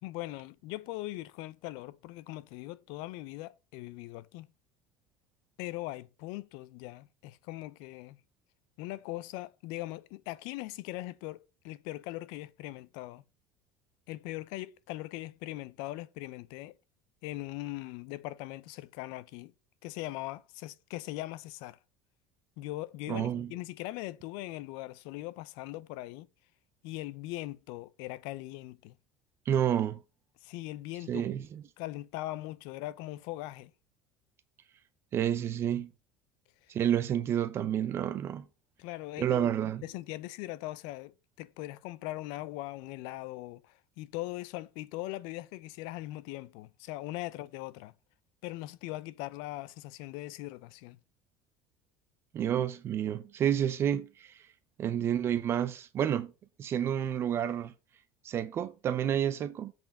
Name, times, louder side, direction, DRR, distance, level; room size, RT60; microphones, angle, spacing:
voice 1, 0.0-4.5 5.6-8.2 8.8-13.2 14.1-16.8 17.2-19.5 19.8-21.8 22.6-26.3 26.8-29.0 30.4-31.2 31.8-33.7 38.8-39.5 39.8-47.9 48.4-51.0, left 17 dB, 65° left, 0.6 m, -40 dB
voice 2, 23.1-23.5 29.5-30.0 31.1-31.6 35.1-35.9 36.7-38.5 39.2-39.8 52.3-54.3 54.8-56.3 56.6-57.7 58.2-59.7, right 10 dB, 30° right, 0.6 m, -30 dB
8.2 x 4.5 x 6.3 m
cardioid pair, 170°, 8 cm